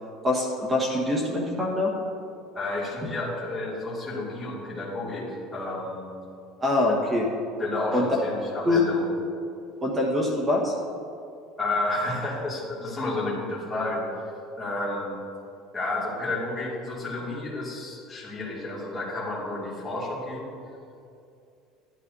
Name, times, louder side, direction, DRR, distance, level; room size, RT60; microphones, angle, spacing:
voice 1, 0.2-1.9 6.6-7.3 7.9-8.1 8.6-8.8 9.8-10.7, left 2 dB, 15° right, -2 dB, 1.4 m, -24 dB
voice 2, 2.5-6.1 6.9-7.0 7.6-9.1 11.6-14.1 14.6-15.2 15.7-20.5, left 2 dB, 10° left, -7 dB, 2.4 m, -31 dB
13.0 x 11.5 x 2.7 m, 2.5 s
cardioid pair, 165°, 0 cm